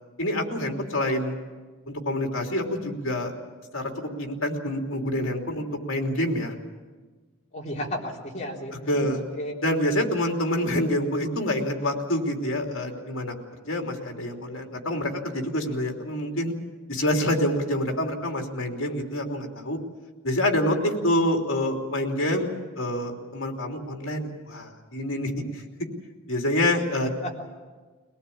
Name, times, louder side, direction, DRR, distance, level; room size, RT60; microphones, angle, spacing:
voice 1, 0.2-1.3 1.9-3.3 3.7-6.5 8.9-9.2 9.6-13.3 13.7-16.5 16.9-19.8 20.2-22.5 22.8-25.4 26.3-27.1, left 1 dB, 65° left, 2 dB, 3.1 m, -27 dB
voice 2, 7.5-9.5 27.2-27.4, equal, 35° left, -2 dB, 3.7 m, -34 dB
23.0 x 18.0 x 8.6 m, 1.4 s
head